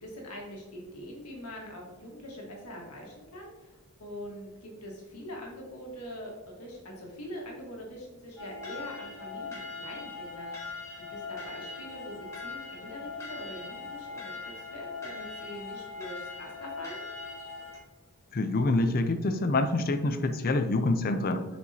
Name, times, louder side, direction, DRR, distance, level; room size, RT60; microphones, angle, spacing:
voice 1, 0.0-17.0, equal, 85° left, -1 dB, 1.6 m, -43 dB
sound 1, 8.4-17.8, left 4 dB, 15° left, 1.4 m, -41 dB
voice 2, 18.3-21.5, left 2 dB, 40° left, 8 dB, 0.5 m, -26 dB
7.1 x 4.7 x 2.8 m, 1.1 s
head